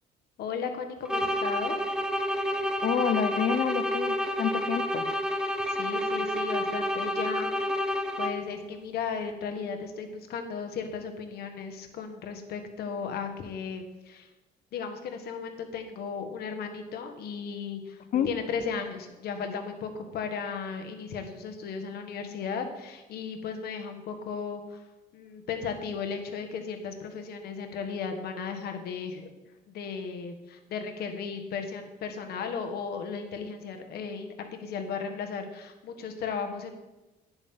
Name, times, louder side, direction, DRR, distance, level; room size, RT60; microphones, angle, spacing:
voice 1, 0.4-1.8 5.8-7.8 8.2-14.3 14.7-24.8 25.1-29.3 29.7-36.7, left 6 dB, 70° left, 6 dB, 1.6 m, -35 dB
sound 1, 1.1-8.6, equal, 5° right, 0.8 m, -29 dB
voice 2, 2.8-5.1 18.1-18.3, left 8 dB, 55° left, 11 dB, 1.0 m, -28 dB
11.5 x 9.8 x 3.8 m, 1.1 s
cardioid pair, 110°, 17 cm